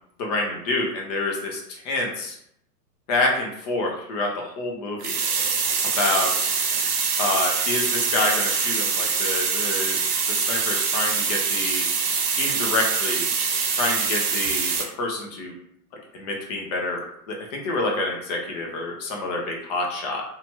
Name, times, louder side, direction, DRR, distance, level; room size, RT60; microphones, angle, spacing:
voice 1, 0.2-2.4 3.1-5.2 6.0-6.5 7.2-10.0 10.3-11.9 12.4-13.3 13.7-14.7 15.0-15.5 16.1-20.2, left 2 dB, 25° left, 0 dB, 0.5 m, -27 dB
sound 1, 5.0-14.8, right 5 dB, 70° right, 0.8 m, -24 dB
2.7 x 2.3 x 2.8 m, 0.71 s
hypercardioid pair, 125°, 49 cm